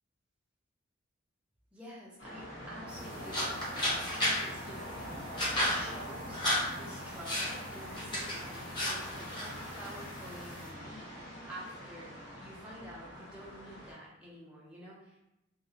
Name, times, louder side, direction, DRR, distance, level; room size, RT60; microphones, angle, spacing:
voice 1, 1.7-5.2 5.6-6.4 6.7-15.2, equal, 5° right, -6 dB, 0.4 m, -49 dB
sound 1, 2.2-13.9, equal, 70° left, 0.9 m, -44 dB
sound 2, 2.9-10.7, left 1 dB, 25° left, 0.7 m, -35 dB
2.7 x 2.0 x 2.6 m, 0.91 s
head